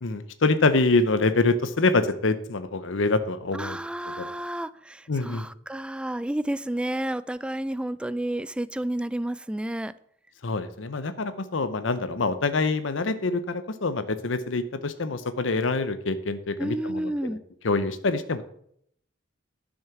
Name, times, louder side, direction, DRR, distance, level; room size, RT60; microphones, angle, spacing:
voice 1, 0.0-3.8 4.2-4.3 5.1-5.5 10.4-17.3 17.6-18.5, left 3 dB, 75° left, 0.8 m, -25 dB
voice 2, 3.5-9.9 16.6-17.4, right 1 dB, 5° right, 0.3 m, -31 dB
10.5 x 6.3 x 5.8 m
head